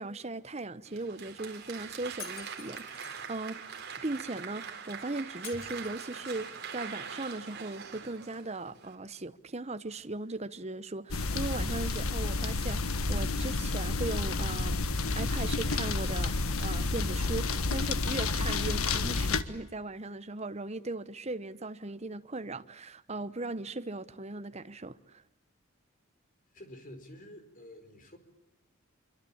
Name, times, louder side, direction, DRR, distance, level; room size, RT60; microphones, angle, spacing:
voice 1, 0.0-3.6 4.0-14.9 15.1-16.3 16.6-25.2, right 2 dB, 30° right, 1.0 m, -38 dB
Applause, 0.8-8.9, right 6 dB, 50° right, 4.0 m, -43 dB
Shatter, 2.2-3.2 5.4-6.5, left 8 dB, 70° left, 3.1 m, -48 dB
sound 1, 11.1-19.4, left 3 dB, 85° left, 1.5 m, -30 dB
voice 2, 26.5-28.2, left 1 dB, 40° left, 4.8 m, -49 dB
26.0 x 24.5 x 8.7 m
head